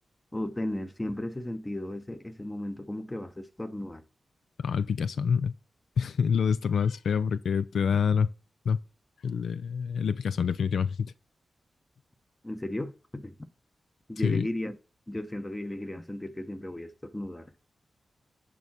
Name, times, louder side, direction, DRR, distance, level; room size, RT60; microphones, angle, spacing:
voice 1, 0.3-4.0 12.4-13.5 14.1-14.8 15.1-17.5, left 1 dB, 15° left, 0.9 m, -35 dB
voice 2, 4.6-5.5 6.0-8.3 8.7-8.8 9.2-11.1 14.2-14.5, left 6 dB, 85° left, 0.4 m, -26 dB
11.0 x 3.6 x 5.9 m
wide cardioid pair, 85°, 0 cm